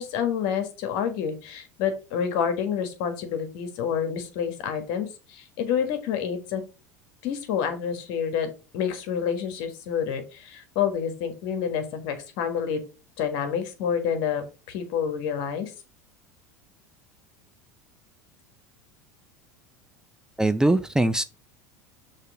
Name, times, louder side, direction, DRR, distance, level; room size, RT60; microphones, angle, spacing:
voice 1, 0.0-6.6 7.2-8.5 8.7-12.8 13.2-15.7, left 7 dB, 60° left, 1.5 m, -28 dB
voice 2, 20.4-21.2, right 1 dB, 5° right, 0.4 m, -21 dB
6.6 x 3.3 x 4.7 m
hypercardioid pair, 80°, 9 cm